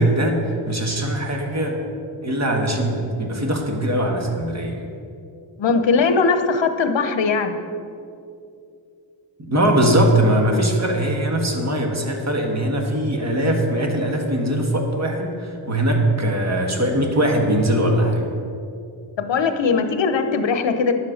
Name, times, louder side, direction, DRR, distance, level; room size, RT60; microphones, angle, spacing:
voice 1, 0.0-1.8 2.2-4.8 9.4-18.3, right 1 dB, 35° right, 2 dB, 1.6 m, -21 dB
voice 2, 5.6-7.6 19.2-20.9, left 4 dB, 65° left, 8 dB, 0.9 m, -20 dB
10.5 x 7.5 x 6.5 m, 2.6 s
wide cardioid pair, 140°, 48 cm